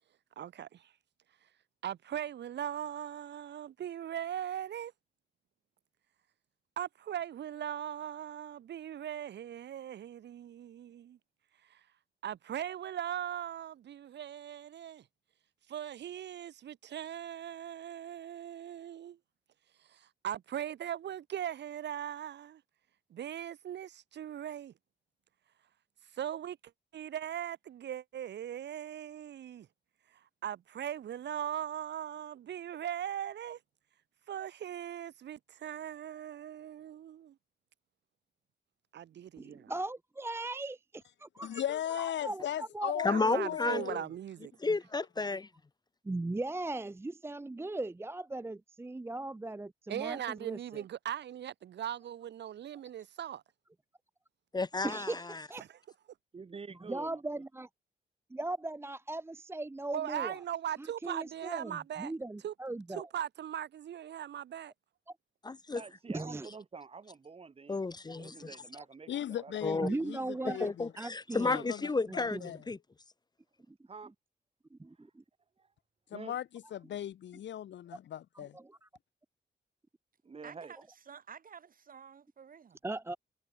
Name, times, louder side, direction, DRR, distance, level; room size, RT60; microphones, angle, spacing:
voice 1, 0.4-0.9 1.8-4.9 6.8-11.2 11.7-11.8 12.2-15.0 15.7-19.2 19.9-22.6 23.1-24.7 26.1-26.6 26.9-29.7 30.4-33.6 34.3-37.3 38.9-39.6 43.1-44.5 49.9-53.4 59.9-62.1 62.4-62.5 62.9-64.7, right 10 dB, 75° right, 0.9 m, -39 dB
voice 2, 39.4-40.8 41.4-41.6 41.9-43.5 46.0-50.8 54.8-55.6 56.9-57.7 58.3-60.4 60.8-63.0 66.1-66.5 69.8-70.7 71.0-71.7 72.1-72.5 74.7-75.1 78.4-78.9 82.8-83.2, right 2 dB, 15° right, 0.7 m, -38 dB
voice 3, 41.4-43.2 43.5-44.0 69.1-70.9 71.4-72.7 76.1-78.6, left 10 dB, 90° left, 1.6 m, -38 dB
voice 4, 43.0-44.0 44.6-45.5 54.5-55.1 65.4-65.8 67.7-68.5 69.6-69.9 70.6-72.4 72.7-72.8, left 3 dB, 25° left, 0.9 m, -32 dB
voice 5, 56.3-57.4 65.7-67.8 68.2-69.8 73.9-74.1 75.6-75.7 76.1-76.3 80.2-80.7, right 5 dB, 30° right, 2.1 m, -48 dB
voice 6, 80.4-82.8, right 7 dB, 50° right, 3.1 m, -51 dB
wide cardioid pair, 140°, 18 cm